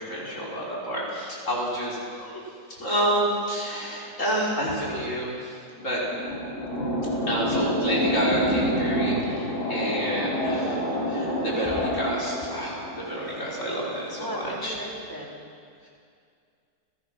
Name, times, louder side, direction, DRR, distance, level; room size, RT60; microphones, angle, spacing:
voice 1, 0.0-2.4 2.7-6.0 7.3-14.7, right 1 dB, 45° left, -5 dB, 5.4 m, -29 dB
sound 1, 5.6-14.2, equal, 70° left, 5.8 m, -28 dB
voice 2, 14.2-15.4, equal, 10° right, -3 dB, 3.4 m, -36 dB
29.5 x 16.5 x 6.2 m, 2.3 s
omnidirectional pair, 1.8 m